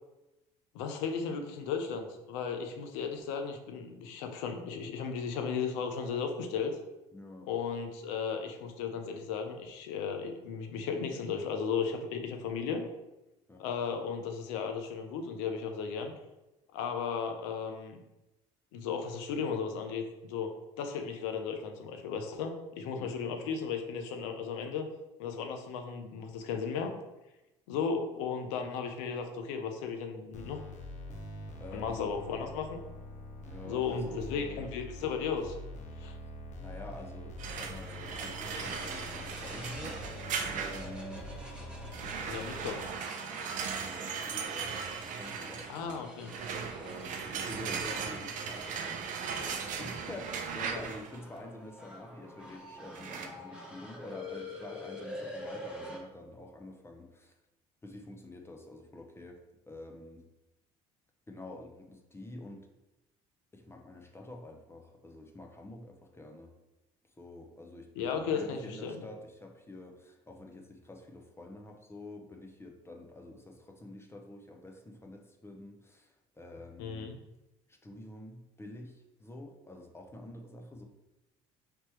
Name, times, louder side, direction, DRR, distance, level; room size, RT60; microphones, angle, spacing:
voice 1, 0.7-6.8 7.5-12.8 13.6-16.1 16.7-18.0 18.7-20.5 20.8-24.9 25.2-26.9 27.7-30.6 31.7-32.8 33.6-35.6 36.0-36.2 42.3-42.8 45.7-46.3 68.0-69.1 76.8-77.2, left 6 dB, 85° left, 5 dB, 0.6 m, -35 dB
voice 2, 7.1-7.5 13.5-13.7 22.9-23.1 31.6-32.1 33.4-34.7 36.6-40.0 40.5-41.3 43.8-44.7 45.0-46.0 46.8-49.1 49.4-57.3 57.8-59.4 59.7-60.3 61.3-62.7 63.5-66.5 67.2-77.1 77.7-80.8, left 1 dB, 15° left, 2 dB, 0.7 m, -47 dB
sound 1, 30.3-42.7, left 1 dB, 50° left, 0.8 m, -45 dB
sound 2, 37.4-41.1 41.9-51.2 52.9-53.3, right 6 dB, 60° right, 0.6 m, -38 dB
sound 3, 38.4-56.0, left 1 dB, 5° right, 1.1 m, -47 dB
3.4 x 2.9 x 4.5 m, 0.99 s
supercardioid pair, 70°, 15 cm